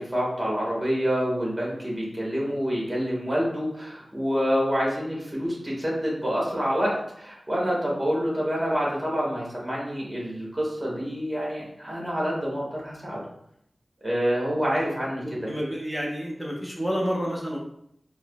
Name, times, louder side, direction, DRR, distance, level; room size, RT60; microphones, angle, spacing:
voice 1, 0.0-13.2 14.0-15.5, equal, 15° right, -4 dB, 1.2 m, -27 dB
voice 2, 15.2-17.6, equal, 5° left, -4 dB, 0.8 m, -29 dB
4.5 x 2.1 x 2.3 m, 0.74 s
wide cardioid pair, 85°, 0 cm